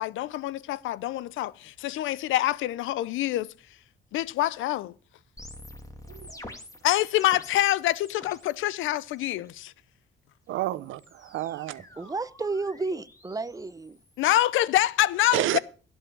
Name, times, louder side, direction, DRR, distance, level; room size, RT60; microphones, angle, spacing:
voice 1, 0.0-3.5 4.1-4.9 6.8-9.7 14.2-15.4, left 14 dB, 85° left, 0.6 m, -26 dB
sound 1, 5.4-8.6 8.9-9.5 10.5-14.6, left 1 dB, 15° left, 2.2 m, -48 dB
voice 2, 10.5-11.8 15.3-15.6, right 14 dB, 85° right, 0.7 m, -30 dB
voice 3, 12.0-14.0, right 3 dB, 15° right, 0.7 m, -32 dB
16.5 x 5.5 x 7.1 m
cardioid pair, 90°, 20 cm